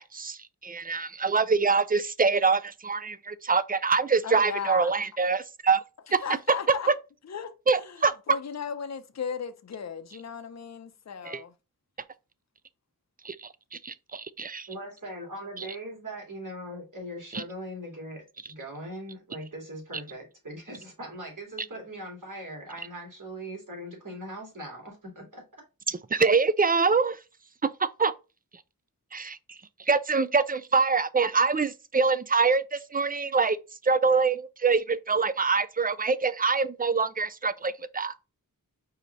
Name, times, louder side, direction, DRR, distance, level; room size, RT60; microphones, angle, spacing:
voice 1, 0.0-5.8 6.1-6.2 7.7-8.1 11.3-11.4 13.2-13.5 13.8-14.7 17.3-17.4 25.9-27.2 27.8-28.1 29.1-29.4 29.9-33.6 33.8-38.2, right 4 dB, 25° right, 0.4 m, -25 dB
voice 2, 4.2-4.9 6.2-6.9 7.2-11.5 15.6-15.7, left 7 dB, 50° left, 0.6 m, -36 dB
voice 3, 14.7-25.4, right 1 dB, 60° right, 2.5 m, -40 dB
4.8 x 2.8 x 3.9 m
wide cardioid pair, 70°, 35 cm